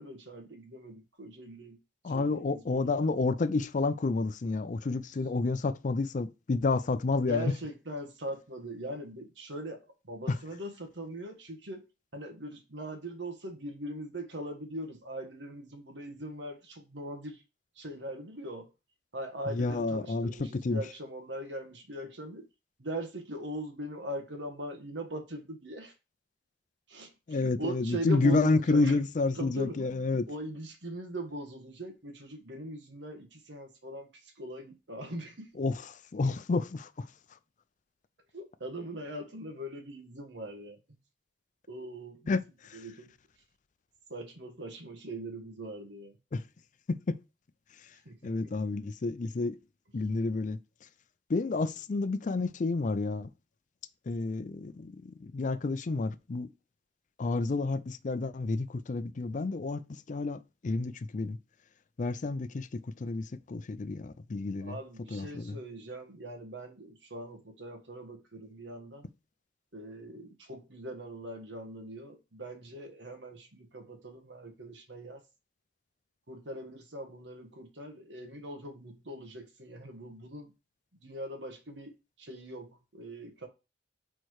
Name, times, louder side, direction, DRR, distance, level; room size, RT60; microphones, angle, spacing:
voice 1, 0.0-1.8 2.0-3.0 7.3-11.8 12.1-17.4 17.7-18.7 19.1-22.5 22.8-25.9 26.9-29.0 29.3-35.5 38.3-41.0 41.7-42.4 42.7-43.1 44.1-46.2 48.0-48.5 64.6-69.1 69.7-75.2 76.3-80.5 81.0-83.5, right 1 dB, 90° right, 1.6 m, -41 dB
voice 2, 2.0-7.5 19.5-20.8 27.3-30.3 35.6-36.9 42.3-42.4 46.3-46.4 46.9-47.2 48.2-49.6 49.9-50.6 51.3-53.3 54.1-56.5 57.2-59.8 60.1-61.4 62.0-64.8 65.1-65.6, left 3 dB, 45° left, 0.4 m, -30 dB
4.5 x 4.5 x 4.6 m
head